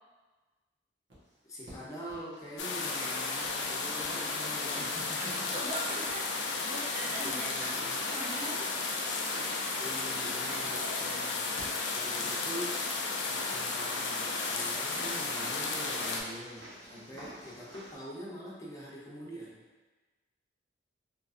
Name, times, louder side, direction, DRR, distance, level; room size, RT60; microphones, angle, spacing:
sound 1, 1.1-1.2 1.7-1.8 2.1-17.9, equal, 80° right, 1.2 m, -49 dB
voice 1, 1.4-5.4 7.2-8.0 9.8-11.5 11.9-12.8 13.2-19.6, equal, 20° left, -5 dB, 0.7 m, -44 dB
sound 2, 2.6-16.2, left 3 dB, 70° left, 0.4 m, -33 dB
voice 2, 5.2-6.2 6.6-8.7 16.9-17.1, right 1 dB, 40° right, -4 dB, 0.7 m, -41 dB
3.6 x 2.8 x 2.5 m, 1.3 s
head